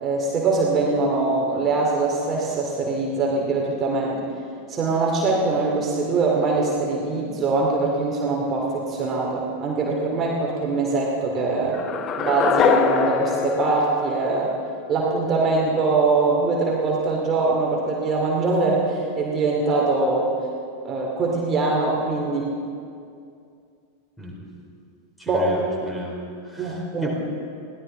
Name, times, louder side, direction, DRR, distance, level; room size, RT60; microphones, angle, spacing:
voice 1, 0.0-4.2 4.7-11.8 12.2-14.5 14.9-20.3 20.8-22.5 25.3-25.5 26.6-27.1, right 3 dB, 25° right, -2 dB, 2.5 m, -22 dB
sound 1, 11.7-14.8, left 7 dB, 30° left, 0.8 m, -24 dB
voice 2, 25.2-27.1, left 1 dB, 10° left, -2 dB, 4.3 m, -33 dB
22.5 x 16.5 x 3.8 m, 2.4 s
figure-of-eight pair, 90°, 0 cm